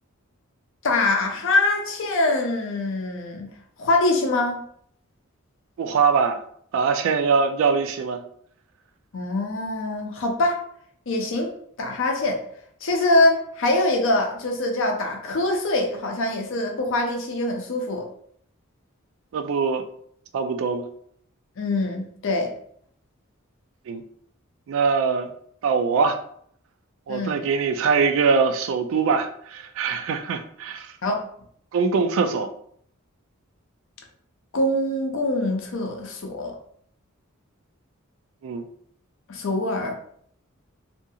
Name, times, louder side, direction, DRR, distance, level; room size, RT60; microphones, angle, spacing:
voice 1, 0.8-3.5 3.8-4.6 9.1-10.6 11.1-11.5 11.8-12.4 12.8-18.1 21.6-22.5 27.1-27.4 31.0-31.2 34.5-36.5 39.3-40.0, left 2 dB, 65° left, 3 dB, 0.5 m, -23 dB
voice 2, 5.8-6.4 6.7-8.2 19.3-19.8 20.3-20.9 23.9-24.0 24.7-25.3 25.6-26.2 27.1-30.9 31.7-32.5 38.4-38.7, right 5 dB, 70° right, 8 dB, 0.3 m, -22 dB
2.5 x 2.3 x 2.7 m, 0.65 s
head